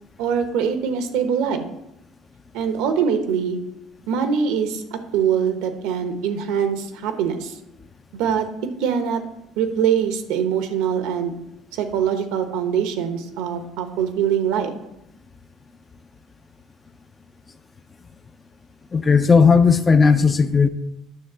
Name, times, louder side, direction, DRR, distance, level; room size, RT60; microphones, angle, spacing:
voice 1, 0.2-1.6 2.5-3.6 4.1-7.5 8.1-8.5 8.8-9.2 9.6-11.3 11.7-14.7, right 7 dB, 80° right, 7 dB, 1.0 m, -23 dB
voice 2, 18.9-20.7, left 5 dB, 25° left, 11 dB, 0.5 m, -15 dB
9.5 x 3.3 x 6.8 m, 0.84 s
cardioid pair, 105°, 0 cm